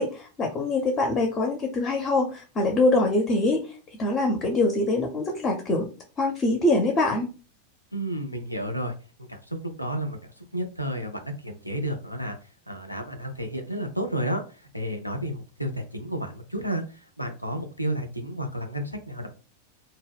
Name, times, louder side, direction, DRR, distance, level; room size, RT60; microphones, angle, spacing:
voice 1, 0.0-3.6 4.0-5.9 6.2-7.3, left 2 dB, 25° left, 3 dB, 0.5 m, -24 dB
voice 2, 7.9-8.9 9.3-12.4 12.7-14.4 14.7-19.3, right 1 dB, 90° left, 6 dB, 0.4 m, -31 dB
2.1 x 2.0 x 3.3 m, 0.35 s
figure-of-eight pair, 90°, 0 cm